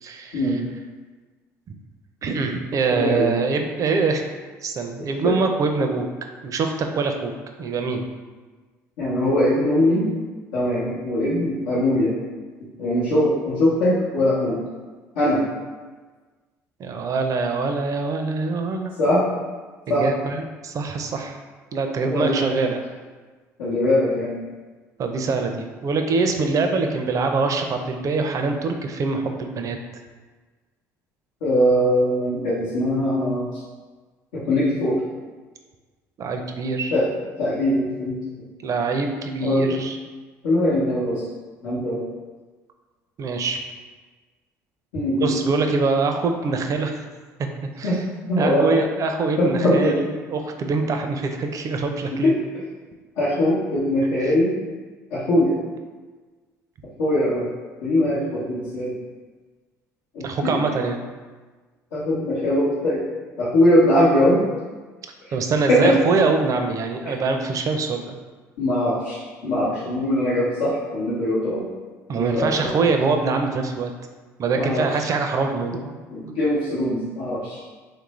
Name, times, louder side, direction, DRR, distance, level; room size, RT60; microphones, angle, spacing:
voice 1, 0.0-0.6 2.2-4.2 4.6-6.1 6.4-7.3 7.6-8.1 16.8-18.9 19.9-21.4 21.7-22.8 25.0-29.8 36.2-36.9 38.6-40.0 43.2-43.6 45.2-46.9 47.8-47.9 48.4-52.3 54.2-54.3 60.2-61.0 65.3-68.1 72.1-73.9 74.4-75.9, right 4 dB, 45° right, 5 dB, 0.4 m, -24 dB
voice 2, 2.9-3.3 5.2-5.3 9.0-10.1 10.5-12.1 12.8-14.6 15.1-15.4 19.0-19.3 19.9-20.0 22.0-22.6 23.6-24.3 31.4-33.4 34.3-35.0 36.9-37.1 37.4-38.2 39.4-39.8 40.4-41.2 41.6-42.0 44.9-45.5 47.8-48.0 48.3-48.7 49.4-50.0 52.2-52.4 53.2-54.5 55.1-55.6 57.0-57.5 57.8-59.0 60.1-60.6 61.9-63.0 63.4-64.4 65.2-65.3 65.7-66.0 67.0-67.1 68.6-71.7 72.1-72.7 74.5-75.1 76.1-77.6, left 1 dB, 85° left, -10 dB, 0.8 m, -21 dB
3.1 x 2.5 x 3.0 m, 1.4 s
supercardioid pair, 70°, 8 cm